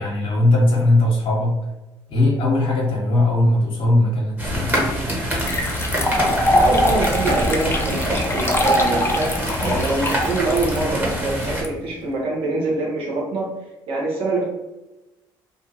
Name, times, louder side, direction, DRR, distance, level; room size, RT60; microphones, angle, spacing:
voice 1, 0.0-1.6 2.1-5.1, left 2 dB, 60° left, -4 dB, 0.8 m, -19 dB
sound 1, 4.4-11.6, equal, 15° right, 1.2 m, -25 dB
sound 2, 4.7-4.8 5.4-11.7, left 1 dB, 20° left, 0.6 m, -23 dB
voice 2, 6.3-13.5 13.9-14.5, right 2 dB, 60° right, -3 dB, 0.9 m, -24 dB
2.6 x 2.4 x 2.7 m, 1.0 s
hypercardioid pair, 55°, 10 cm